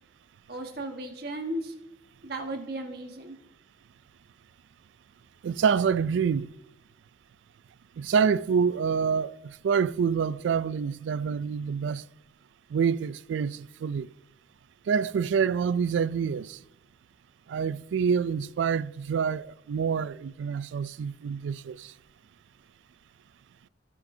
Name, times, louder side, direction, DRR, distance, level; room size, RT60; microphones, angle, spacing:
voice 1, 0.5-1.7 2.2-3.4, right 1 dB, 60° right, 1.3 m, -35 dB
voice 2, 5.4-6.5 8.0-12.0 12.7-14.1 14.9-16.6 17.5-21.9, right 6 dB, 85° right, 0.3 m, -27 dB
14.5 x 8.3 x 2.7 m
head